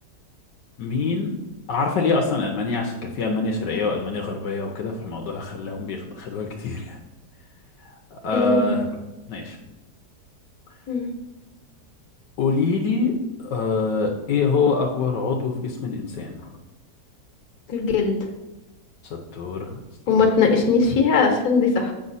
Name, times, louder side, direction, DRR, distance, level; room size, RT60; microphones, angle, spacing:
voice 1, 0.8-1.3 1.7-7.0 7.8-8.9 9.3-9.6 12.4-16.5 19.0-19.8 20.1-20.3, left 4 dB, 80° left, 1 dB, 1.4 m, -25 dB
voice 2, 8.3-8.8 10.9-11.1 17.7-18.1 20.1-21.9, left 4 dB, 60° left, 3 dB, 1.7 m, -19 dB
7.6 x 6.1 x 4.1 m, 1.1 s
omnidirectional pair, 1.9 m